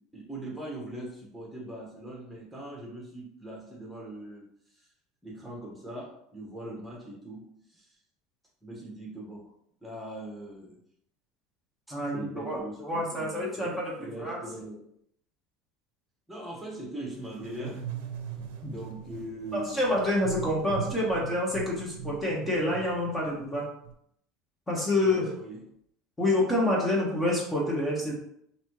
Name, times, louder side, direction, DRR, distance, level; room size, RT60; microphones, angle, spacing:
voice 1, 0.0-4.9 5.2-7.9 8.6-9.5 9.8-10.8 11.9-14.9 16.3-17.9 18.6-19.8 20.8-20.9 25.0-25.8, right 1 dB, 5° right, -2 dB, 1.5 m, -41 dB
voice 2, 11.9-14.4 18.6-18.7 19.5-23.6 24.7-25.3 26.2-28.1, left 1 dB, 15° left, -3 dB, 1.3 m, -28 dB
sound 1, 17.1-23.9, right 9 dB, 75° right, 0.7 m, -40 dB
5.2 x 2.8 x 3.1 m, 0.73 s
supercardioid pair, 110°, 0 cm